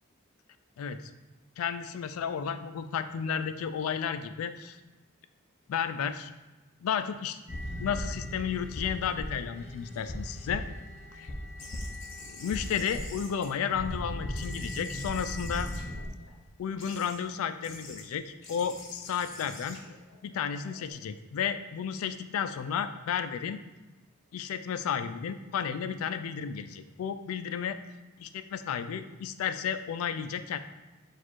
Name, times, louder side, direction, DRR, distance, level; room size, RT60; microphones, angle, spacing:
voice 1, 1.6-4.8 5.7-6.3 6.8-7.4 7.8-10.6 11.1-11.3 12.3-15.7 16.6-19.8 20.2-23.6 24.3-27.8 28.5-30.6, left 7 dB, 90° left, 10 dB, 0.3 m, -32 dB
sound 1, 7.5-16.1, equal, 30° left, 0.6 m, -38 dB
sound 2, 11.6-14.0 14.3-16.3 16.8-17.2 17.6-18.0 18.4-20.9, left 2 dB, 60° left, 0.9 m, -47 dB
4.3 x 2.5 x 4.4 m, 1.1 s
head